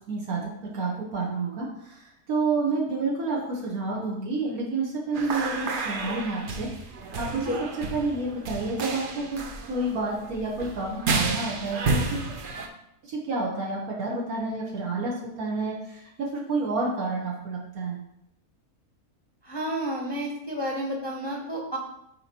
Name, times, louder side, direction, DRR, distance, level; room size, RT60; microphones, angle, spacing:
voice 1, 0.1-6.7 7.0-7.4 7.9-9.4 9.7-12.2 13.0-18.0, right 3 dB, 70° right, -3 dB, 1.6 m, -29 dB
sound 1, 5.1-12.7, right 3 dB, 50° right, 0.6 m, -31 dB
voice 2, 19.4-21.8, right 1 dB, 25° left, -2 dB, 0.7 m, -31 dB
9.6 x 4.5 x 2.9 m, 0.79 s
omnidirectional pair, 1.6 m